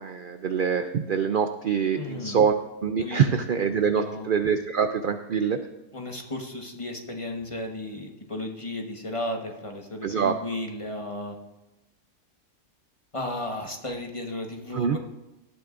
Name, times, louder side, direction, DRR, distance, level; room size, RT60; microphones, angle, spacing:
voice 1, 0.0-5.6 10.0-10.4 14.7-15.0, right 7 dB, 65° right, 8 dB, 0.5 m, -25 dB
voice 2, 1.9-2.4 3.0-3.4 3.9-4.3 5.9-11.4 13.1-15.0, left 1 dB, 25° left, 1 dB, 1.2 m, -34 dB
18.0 x 12.0 x 2.5 m, 0.99 s
omnidirectional pair, 1.6 m